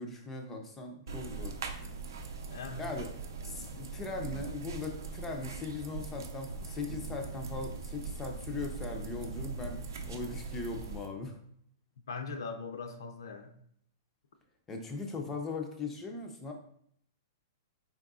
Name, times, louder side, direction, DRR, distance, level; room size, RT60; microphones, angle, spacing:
voice 1, 0.0-1.6 2.8-3.1 3.4-11.4 14.7-16.5, left 3 dB, 10° left, 0.3 m, -39 dB
sound 1, 1.1-11.1, right 4 dB, 70° right, 0.5 m, -41 dB
voice 2, 2.5-2.8 12.1-13.5, left 4 dB, 80° left, 0.5 m, -40 dB
4.6 x 3.6 x 2.4 m
hypercardioid pair, 180°, 2 cm